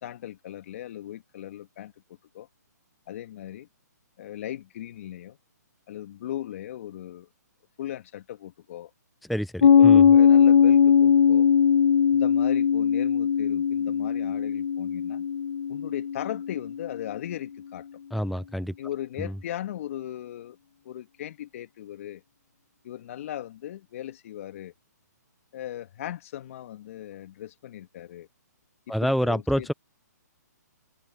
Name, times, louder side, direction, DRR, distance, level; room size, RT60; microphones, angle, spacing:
voice 1, 0.0-1.9 2.3-2.5 3.1-3.7 4.2-5.4 5.9-7.3 7.8-8.9 9.8-11.5 12.1-15.3 15.7-17.9 18.8-20.6 20.8-22.2 22.8-24.7 25.5-28.3 28.9-29.7, left 12 dB, 50° left, 2.6 m, -38 dB
voice 2, 9.3-10.1 18.1-18.7 19.2-19.3 28.9-29.7, equal, ahead, 0.4 m, -27 dB
Piano, 9.6-16.8, left 7 dB, 70° left, 0.6 m, -19 dB
hypercardioid pair, 140°, 10 cm